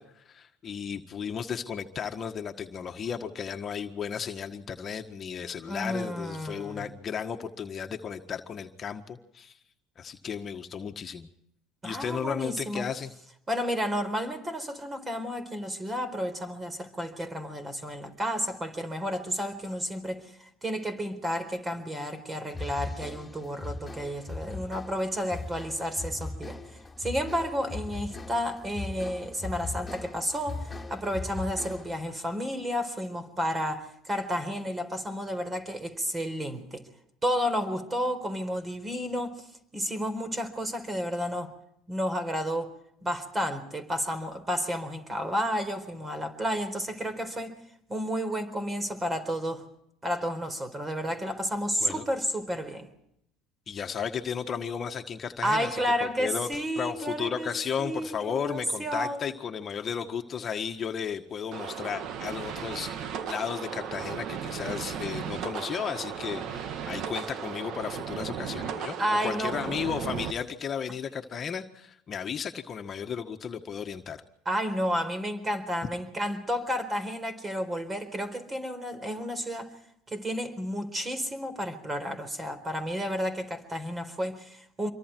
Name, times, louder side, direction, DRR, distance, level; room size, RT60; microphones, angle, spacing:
voice 1, 0.0-9.6 10.0-11.3 11.8-13.1 51.8-52.0 53.7-69.0 69.2-74.2, left 7 dB, 40° left, 1.6 m, -34 dB
voice 2, 5.7-6.8 11.8-12.9 13.5-26.6 27.0-36.8 37.2-39.4 39.7-41.5 41.9-42.7 43.0-47.6 47.9-49.6 50.0-52.9 55.4-57.5 57.8-59.2 69.0-69.7 74.4-79.7 80.1-84.9, equal, 20° right, 4.3 m, -31 dB
sound 1, 22.5-32.1, left 3 dB, 10° left, 3.4 m, -39 dB
sound 2, 61.5-70.3, right 8 dB, 55° right, 1.7 m, -36 dB
26.5 x 23.0 x 4.6 m
hypercardioid pair, 80°, 0 cm